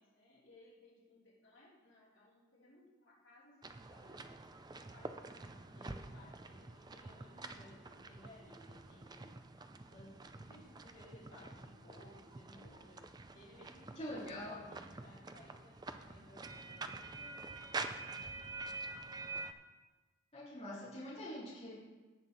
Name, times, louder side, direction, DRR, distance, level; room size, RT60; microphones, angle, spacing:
voice 1, 0.0-4.2 4.7-9.4 9.9-19.2, left 1 dB, 65° left, -7 dB, 3.3 m, -61 dB
sound 1, 3.6-19.5, right 3 dB, 20° right, 0.4 m, -47 dB
voice 2, 14.0-14.6 20.3-21.8, left 1 dB, 30° left, -9 dB, 2.8 m, -44 dB
17.5 x 6.0 x 3.9 m, 1.3 s
head